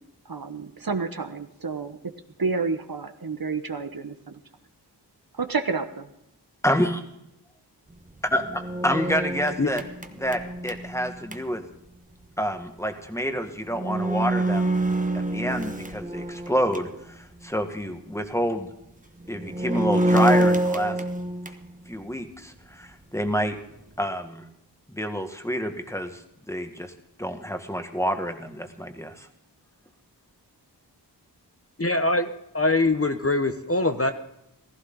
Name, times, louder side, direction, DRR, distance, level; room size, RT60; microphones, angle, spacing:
voice 1, 0.2-2.0 2.4-4.4 5.3-6.1, right 4 dB, 55° right, 9 dB, 1.0 m, -30 dB
voice 2, 6.6-7.0 8.3-9.8 10.2-11.6 12.4-14.8 15.1-18.7 19.3-20.9 21.9-23.6 24.0-24.4 24.9-26.2 26.5-26.9 27.2-29.3, equal, 5° left, 6 dB, 1.6 m, -28 dB
sound 1, 8.1-11.4 13.2-13.3 13.7-17.0 17.4-17.5 19.2-21.7, right 1 dB, 20° right, 1.2 m, -26 dB
voice 3, 31.8-34.1, left 2 dB, 35° left, 8 dB, 1.0 m, -23 dB
15.5 x 14.5 x 3.9 m, 0.81 s
wide cardioid pair, 40°, 42 cm